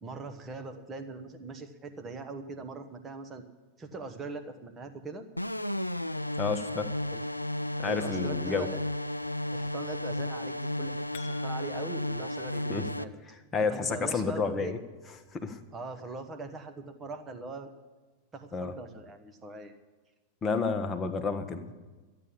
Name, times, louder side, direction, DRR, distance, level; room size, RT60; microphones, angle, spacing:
voice 1, 0.0-3.4 3.8-5.3 7.1-7.2 7.8-8.8 9.5-13.1 13.7-14.7 15.7-17.7 18.3-19.7, right 3 dB, 20° right, 7 dB, 1.3 m, -41 dB
sound 1, 5.4-13.0, left 1 dB, 85° left, 0.3 m, -33 dB
voice 2, 6.4-6.9 7.8-8.7 12.7-12.9 13.5-14.8 15.3-15.6 18.5-18.7 20.4-21.7, left 4 dB, 20° left, 6 dB, 1.2 m, -30 dB
sound 2, 11.1-12.2, left 8 dB, 50° left, 1.1 m, -51 dB
14.0 x 8.9 x 8.5 m, 1.3 s
figure-of-eight pair, 90°, 0 cm